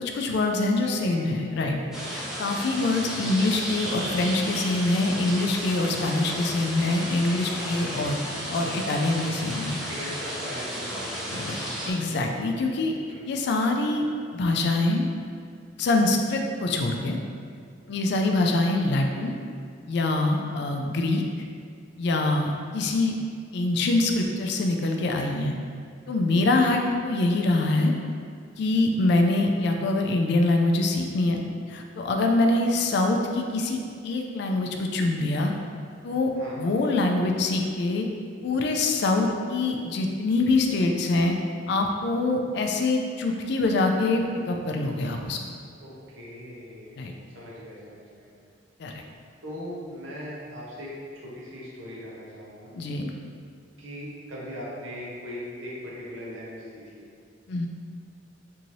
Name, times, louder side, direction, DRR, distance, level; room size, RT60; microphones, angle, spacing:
voice 1, 0.0-1.8 2.1-8.2 8.5-9.8 11.3-12.9 13.3-14.0 14.3-15.1 15.8-17.2 17.9-19.4 19.9-21.2 22.0-23.2 23.5-25.5 26.1-27.9 28.6-31.4 31.7-33.8 34.0-35.5 36.0-36.3 36.6-38.1 38.4-41.3 41.7-45.4 47.0-47.1 48.8-49.0 52.7-53.1 57.5-57.7, left 2 dB, 60° left, 3 dB, 0.3 m, -24 dB
voice 2, 0.8-2.0 7.4-7.6 7.9-8.1 9.9-11.4 13.1-13.2 26.4-26.8 36.3-36.6 45.8-47.0 47.3-48.4 49.4-52.7 53.8-57.0, equal, 90° right, -6 dB, 0.8 m, -40 dB
sound 1, 1.9-11.9, equal, 5° right, 0.4 m, -33 dB
3.0 x 2.7 x 2.6 m, 2.2 s
head